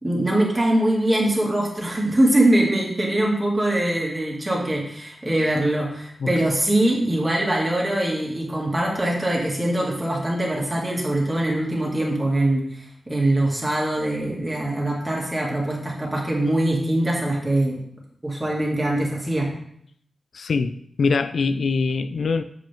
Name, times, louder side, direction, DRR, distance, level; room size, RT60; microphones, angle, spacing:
voice 1, 0.0-17.8 18.2-19.5, right 1 dB, 20° right, -2 dB, 2.1 m, -22 dB
voice 2, 20.3-22.4, left 4 dB, 70° left, 10 dB, 0.3 m, -23 dB
7.5 x 5.2 x 3.6 m, 0.69 s
cardioid pair, 80°, 0 cm